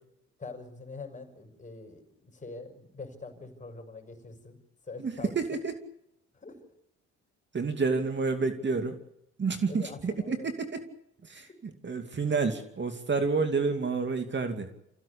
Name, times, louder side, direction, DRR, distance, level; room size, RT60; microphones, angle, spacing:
voice 1, 0.4-4.6 4.9-5.3 6.3-6.6 9.7-10.5, left 3 dB, 25° left, 5 dB, 6.1 m, -44 dB
voice 2, 5.0-5.7 7.5-9.0 9.4-10.8 11.2-14.7, right 4 dB, 35° right, 7 dB, 2.6 m, -29 dB
26.5 x 15.5 x 8.5 m, 0.80 s
cardioid pair, 90°, 30 cm